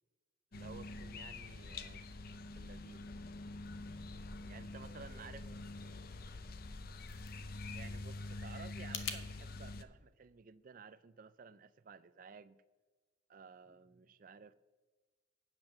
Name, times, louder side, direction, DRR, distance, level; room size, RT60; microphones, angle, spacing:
sound 1, 0.5-9.8, left 2 dB, 50° left, 0.6 m, -46 dB
voice 1, 0.5-2.2 2.6-3.0 4.4-5.4 7.7-12.6 13.3-14.5, right 5 dB, 45° right, 0.4 m, -55 dB
voice 2, 4.8-6.5 13.6-14.0, right 2 dB, 15° left, 4.2 m, -64 dB
sound 2, 6.6-9.2, left 7 dB, 80° left, 1.0 m, -47 dB
8.9 x 7.9 x 6.5 m
head